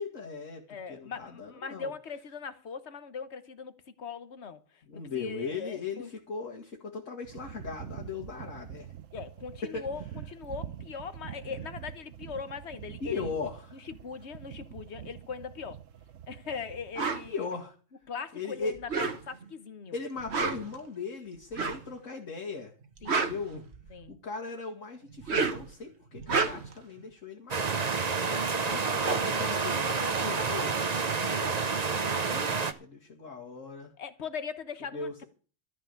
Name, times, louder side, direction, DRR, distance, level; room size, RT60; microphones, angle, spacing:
voice 1, 0.0-1.9 4.9-8.9 9.6-9.8 13.0-13.8 17.3-17.7 18.3-18.7 19.9-22.7 23.0-23.6 24.1-30.7 31.3-33.9 34.9-35.2, left 4 dB, 80° left, 2.4 m, -38 dB
voice 2, 0.7-3.7 4.0-6.1 9.1-13.4 13.7-15.8 16.3-17.4 18.1-20.0 23.0-23.2 23.9-24.1 34.0-35.2, left 5 dB, 60° left, 1.4 m, -40 dB
sound 1, 7.2-17.4, right 10 dB, 75° right, 1.2 m, -45 dB
sound 2, 17.0-17.2 18.8-19.5 20.2-20.8 21.5-21.9 22.8-24.1 25.1-25.7 26.1-26.8 28.4-28.5 28.7-30.4, right 4 dB, 55° right, 1.6 m, -31 dB
sound 3, 27.5-32.7, right 4 dB, 35° right, 1.0 m, -29 dB
13.5 x 6.7 x 8.4 m
omnidirectional pair, 1.3 m